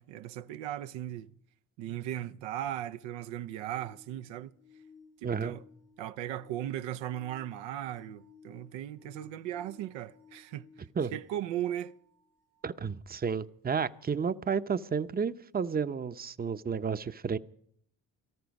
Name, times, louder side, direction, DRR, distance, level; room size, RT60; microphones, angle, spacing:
voice 1, 0.0-1.3 1.8-4.5 5.2-5.6 6.0-10.7 11.1-11.9, right 12 dB, 90° right, 0.6 m, -37 dB
sound 1, 3.0-12.8 15.1-15.2, left 5 dB, 90° left, 7.7 m, -59 dB
voice 2, 5.2-5.5 11.0-11.2 12.6-17.4, right 6 dB, 20° right, 0.6 m, -32 dB
18.0 x 14.0 x 5.2 m
supercardioid pair, 65°, 43 cm